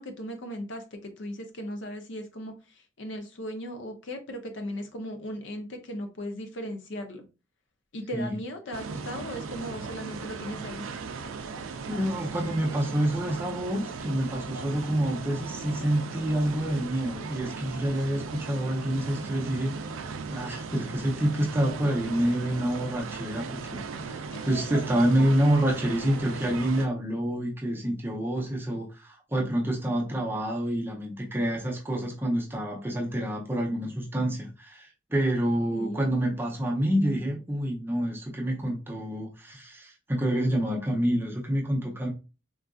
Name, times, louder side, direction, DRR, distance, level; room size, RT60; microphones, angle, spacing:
voice 1, 0.0-7.2 7.9-10.8 24.3-24.5 35.7-36.1, equal, 65° left, 0.6 m, -37 dB
sound 1, 8.7-26.9, right 4 dB, 90° right, 0.4 m, -37 dB
voice 2, 11.9-19.9 20.3-42.1, right 1 dB, 10° right, 0.5 m, -28 dB
3.8 x 2.4 x 2.3 m
head